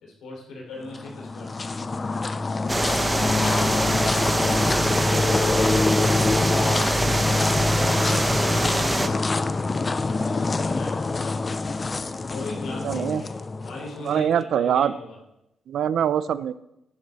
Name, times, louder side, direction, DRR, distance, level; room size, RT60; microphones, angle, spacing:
voice 1, 0.0-1.6 2.9-4.1 6.5-9.7 10.1-11.5 12.3-15.2, left 2 dB, 80° left, -1 dB, 5.1 m, -40 dB
sound 1, 0.9-14.2, left 3 dB, 25° left, 0.6 m, -25 dB
sound 2, 2.7-9.1, right 2 dB, 15° right, 1.0 m, -24 dB
voice 2, 12.8-13.2 14.1-14.9 15.7-16.5, right 9 dB, 65° right, 15 dB, 0.6 m, -23 dB
15.5 x 11.0 x 4.3 m, 0.85 s
cardioid pair, 115°, 0 cm